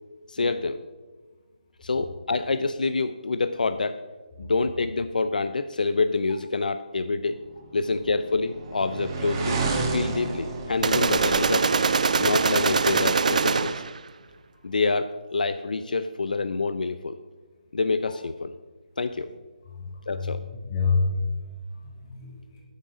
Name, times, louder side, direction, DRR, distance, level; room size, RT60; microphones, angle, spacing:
voice 1, 0.3-0.8 1.8-4.0 4.4-7.4 7.7-9.6 9.9-11.7 12.2-13.8 14.6-17.2 17.7-18.5 19.0-19.3 20.1-20.4, left 3 dB, 80° left, 11 dB, 0.5 m, -27 dB
sound 1, 7.7-12.7, right 3 dB, 30° right, 1.3 m, -31 dB
sound 2, 10.8-14.0, right 5 dB, 60° right, 0.5 m, -23 dB
voice 2, 19.7-20.4 20.7-21.3 21.7-22.6, left 4 dB, 30° left, -2 dB, 2.8 m, -28 dB
9.0 x 7.9 x 5.1 m, 1.3 s
hypercardioid pair, 160°, 4 cm